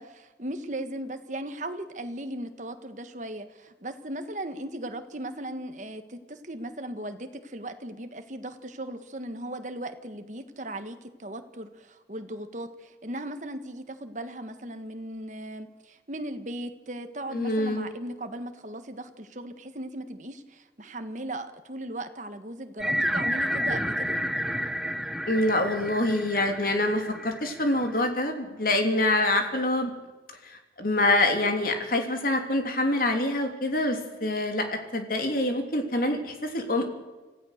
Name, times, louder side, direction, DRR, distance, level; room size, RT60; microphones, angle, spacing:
voice 1, 0.0-24.2, right 1 dB, 40° right, 8 dB, 1.5 m, -37 dB
voice 2, 17.3-17.8 25.3-29.9 30.4-36.9, left 1 dB, 50° left, 4 dB, 3.1 m, -26 dB
sound 1, 22.8-28.0, equal, 5° right, 0.9 m, -30 dB
26.0 x 16.0 x 6.6 m, 1.2 s
head